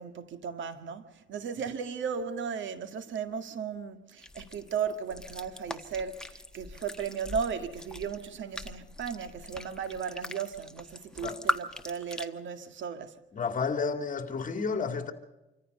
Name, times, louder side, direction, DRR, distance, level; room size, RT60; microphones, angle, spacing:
voice 1, 0.0-13.2, right 6 dB, 70° right, 1.9 m, -36 dB
sound 1, 4.2-12.3, left 1 dB, 5° left, 1.4 m, -40 dB
voice 2, 13.3-15.1, left 5 dB, 40° left, 2.4 m, -31 dB
26.5 x 14.5 x 6.7 m
cardioid pair, 90°, 20 cm